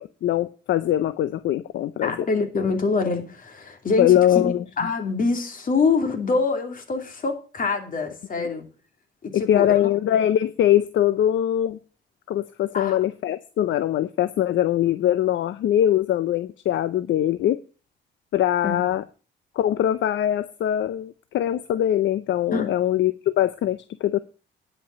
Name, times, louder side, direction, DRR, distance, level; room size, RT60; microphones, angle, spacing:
voice 1, 0.0-2.3 4.0-4.6 8.4-8.5 9.3-11.8 12.3-17.6 18.3-19.0 19.6-24.2, left 11 dB, 70° left, 13 dB, 0.6 m, -22 dB
voice 2, 2.0-8.6 9.2-9.8 12.7-13.0 18.6-18.8 22.5-22.7, left 4 dB, 45° left, 5 dB, 2.8 m, -25 dB
10.5 x 5.4 x 8.5 m, 0.37 s
cardioid pair, 90°, 20 cm